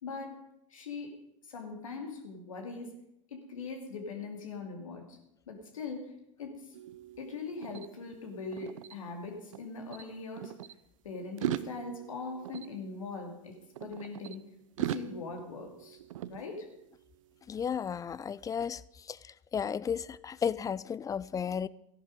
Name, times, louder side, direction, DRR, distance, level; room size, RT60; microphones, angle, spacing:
voice 1, 0.0-2.9 3.3-5.2 5.5-6.1 6.4-6.7 7.2-10.6 11.0-14.4 14.8-16.0 16.3-16.7, left 4 dB, 90° left, 3 dB, 2.4 m, -41 dB
sound 1, 6.7-9.6 9.9-10.7 11.3-14.4 14.8-17.0, right 12 dB, 80° right, 0.6 m, -41 dB
voice 2, 17.5-18.8 19.1-19.2 19.5-21.7, left 7 dB, 20° left, 20 dB, 0.4 m, -33 dB
14.0 x 10.5 x 5.2 m, 0.82 s
hypercardioid pair, 95°, 17 cm